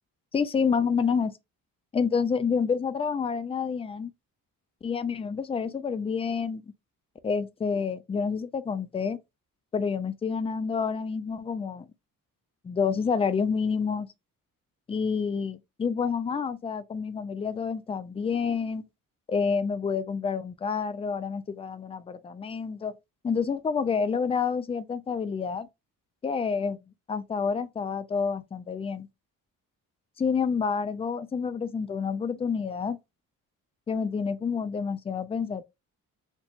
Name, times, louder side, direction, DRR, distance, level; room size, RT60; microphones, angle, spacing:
voice 1, 0.3-1.4 1.9-4.1 4.8-6.7 7.2-9.2 9.7-11.9 12.6-14.1 14.9-18.8 19.3-22.9 23.2-25.7 26.2-26.8 27.1-29.1 30.2-33.0 33.9-35.6, left 6 dB, 20° left, 0.3 m, -28 dB
4.3 x 2.8 x 2.4 m
cardioid pair, 110°, 34 cm